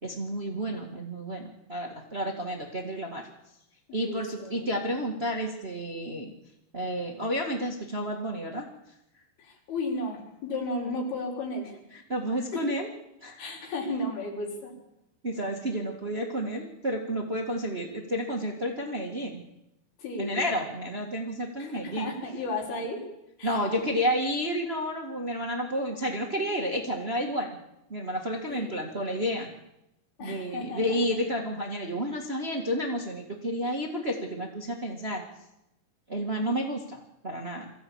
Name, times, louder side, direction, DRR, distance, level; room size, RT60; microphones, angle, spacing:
voice 1, 0.0-3.2 3.9-6.3 6.7-8.7 11.9-12.9 13.2-13.4 15.2-19.4 20.2-22.1 23.4-27.5 27.9-29.5 30.2-35.2 36.1-37.7, equal, 25° right, 1 dB, 1.3 m, -31 dB
voice 2, 3.9-4.8 9.4-11.8 12.5-12.6 13.4-14.7 20.0-20.4 21.6-23.0 23.4-23.6 24.0-24.1 28.5-28.8 30.2-31.1, left 2 dB, 85° left, 0 dB, 6.1 m, -34 dB
22.5 x 15.5 x 8.7 m, 0.89 s
omnidirectional pair, 4.4 m